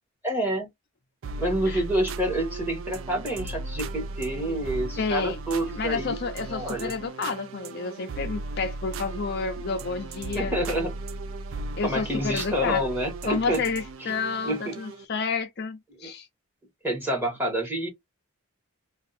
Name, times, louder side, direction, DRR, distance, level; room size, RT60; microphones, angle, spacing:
voice 1, 0.2-0.7 1.4-6.2 6.5-6.9 10.3-10.9 11.8-13.6 14.0-14.1 14.4-14.7 16.0-16.1 16.8-17.9, right 1 dB, 10° right, 1.5 m, -28 dB
sound 1, 1.2-15.1, right 2 dB, 60° right, 0.4 m, -36 dB
voice 2, 5.0-5.4 5.8-10.5 11.8-12.8 13.3-16.3, left 4 dB, 45° left, 0.5 m, -30 dB
2.8 x 2.3 x 4.1 m
head